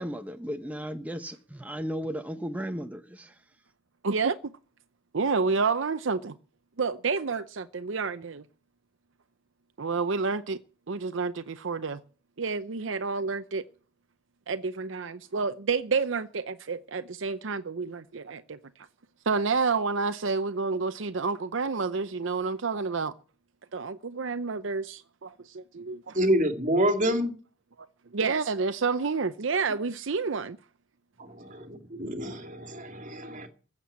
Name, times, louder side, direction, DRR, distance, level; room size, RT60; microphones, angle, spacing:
voice 1, 0.0-3.3, equal, 10° right, 0.9 m, -35 dB
voice 2, 4.0-4.5 5.1-6.4 6.8-8.4 9.8-10.6 10.9-12.0 12.4-13.6 14.5-18.6 19.3-23.1 23.7-26.2 27.8-27.9 28.1-30.6, right 4 dB, 65° right, 0.7 m, -29 dB
voice 3, 26.1-27.4 31.2-33.5, equal, 40° right, 2.3 m, -27 dB
15.0 x 7.6 x 8.3 m
head